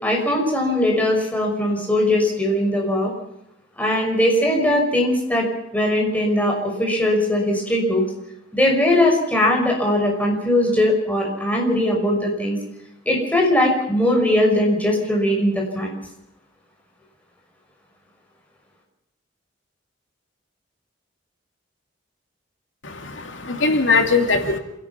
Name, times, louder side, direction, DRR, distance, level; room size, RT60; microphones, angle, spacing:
voice 1, 0.0-3.1 3.8-5.5 5.7-8.1 8.5-12.6 13.0-15.9, left 1 dB, 10° left, -1 dB, 5.8 m, -20 dB
voice 2, 22.8-24.6, left 4 dB, 85° left, 5 dB, 2.4 m, -20 dB
28.0 x 17.5 x 5.9 m, 0.84 s
head